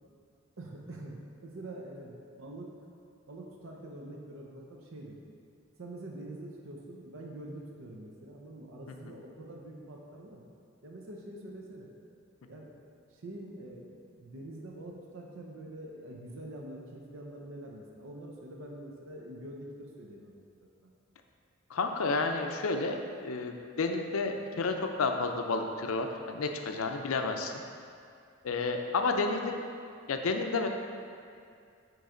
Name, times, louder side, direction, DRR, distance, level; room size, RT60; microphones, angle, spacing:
voice 1, 0.6-2.7 3.3-5.2 5.8-10.4 10.8-11.9 12.5-12.7 13.1-20.3 20.6-20.9, right 1 dB, 75° right, -1 dB, 0.7 m, -45 dB
voice 2, 21.7-27.5 28.4-29.6 30.1-30.7, left 3 dB, 90° left, 4 dB, 0.5 m, -31 dB
9.3 x 3.1 x 3.8 m, 2.3 s
head